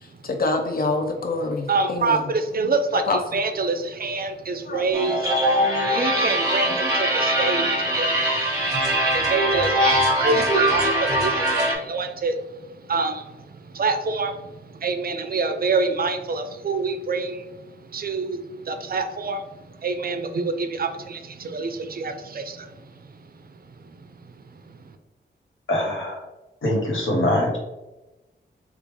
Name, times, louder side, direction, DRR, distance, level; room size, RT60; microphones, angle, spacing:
voice 1, 0.2-2.2 3.1-3.2 4.7-4.9, left 2 dB, 50° left, 4 dB, 0.5 m, -25 dB
voice 2, 1.7-25.0, right 3 dB, 50° right, 8 dB, 0.4 m, -27 dB
sound 1, 4.9-11.7, right 1 dB, 20° right, 1.0 m, -22 dB
voice 3, 25.7-26.2 26.6-27.6, left 1 dB, 90° left, -3 dB, 1.0 m, -23 dB
3.6 x 2.4 x 3.0 m, 1.1 s
wide cardioid pair, 65°, 20 cm